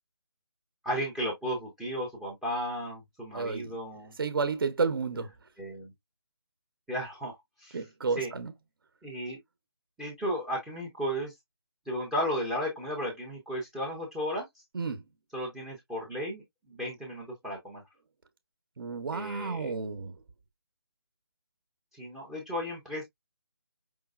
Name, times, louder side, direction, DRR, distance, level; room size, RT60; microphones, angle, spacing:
voice 1, 0.8-4.1 5.6-5.9 6.9-7.8 8.2-8.3 9.0-9.4 10.0-11.3 11.9-14.5 15.3-17.8 19.1-19.7 21.9-23.0, equal, 5° right, 0.5 m, -34 dB
voice 2, 3.3-3.7 4.2-5.3 7.7-8.5 14.7-15.0 18.8-20.2, right 4 dB, 55° right, 0.9 m, -31 dB
5.3 x 3.0 x 2.3 m
figure-of-eight pair, 160°, 14 cm